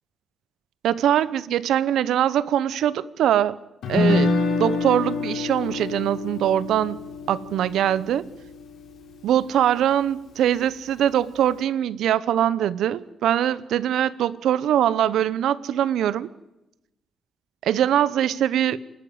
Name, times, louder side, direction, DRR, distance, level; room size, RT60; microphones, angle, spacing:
voice 1, 0.8-3.6 3.9-4.3 4.6-7.0 7.3-8.3 9.2-16.3 17.6-18.8, right 10 dB, 85° right, 0.8 m, -22 dB
Guitar, 3.8-9.9, left 3 dB, 80° left, 3.7 m, -27 dB
27.5 x 12.5 x 8.0 m
cardioid pair, 155°, 0 cm